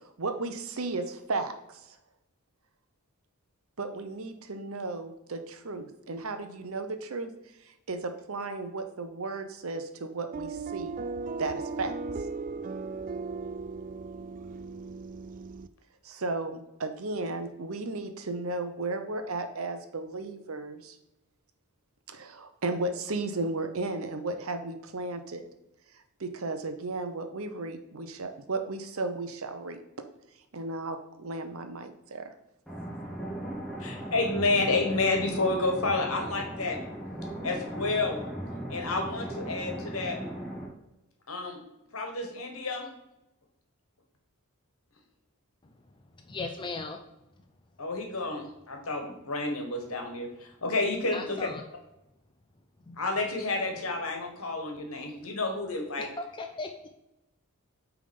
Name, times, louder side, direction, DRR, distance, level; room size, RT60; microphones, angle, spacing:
voice 1, 0.0-1.8 3.8-7.3 7.7-11.0 11.4-11.9 16.0-21.0 22.1-25.5 26.2-29.8 30.5-32.3, right 3 dB, 65° right, 0.8 m, -34 dB
sound 1, 10.3-15.7, right 4 dB, 35° right, 0.3 m, -37 dB
sound 2, 32.7-40.7, right 1 dB, ahead, 1.4 m, -38 dB
voice 2, 33.8-36.8 37.4-38.2 38.7-40.2 41.3-41.6 41.9-42.9 47.8-51.5 53.0-56.1, left 3 dB, 70° left, 1.6 m, -30 dB
voice 3, 46.3-47.0 51.1-51.6 52.8-53.0 56.2-56.7, left 3 dB, 20° left, 0.5 m, -37 dB
8.6 x 3.6 x 5.3 m
head